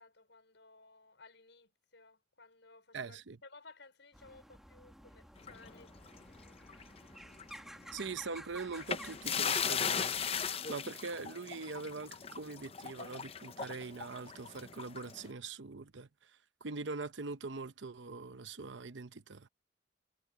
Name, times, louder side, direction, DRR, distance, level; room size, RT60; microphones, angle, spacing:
voice 1, 0.0-6.3, left 3 dB, 75° left, 5.4 m, -58 dB
voice 2, 2.9-3.4 7.9-10.1 10.7-16.3 16.6-19.5, right 4 dB, 75° right, 0.8 m, -42 dB
sound 1, 4.1-10.5, equal, ahead, 1.1 m, -53 dB
sound 2, 5.4-7.0 7.3-7.5 8.8-15.3, left 7 dB, 30° left, 0.6 m, -37 dB
head